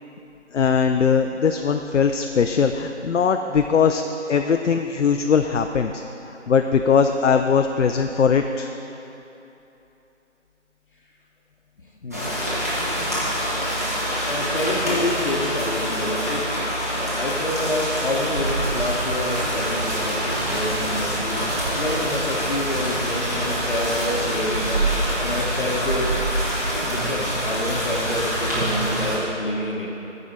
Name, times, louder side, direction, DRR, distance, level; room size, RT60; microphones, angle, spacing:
voice 1, 0.5-4.0 4.3-6.0 6.5-8.7, left 6 dB, 80° left, 6 dB, 0.5 m, -20 dB
sound 1, 12.1-29.2, equal, 15° right, 0.8 m, -26 dB
voice 2, 14.3-16.5 16.9-21.4 21.7-24.9 25.2-26.2 26.8-29.9, left 1 dB, 45° left, -3 dB, 1.0 m, -28 dB
sound 2, 18.4-29.1, right 2 dB, 55° right, 0.9 m, -30 dB
13.5 x 4.9 x 4.1 m, 3.0 s
figure-of-eight pair, 165°, 36 cm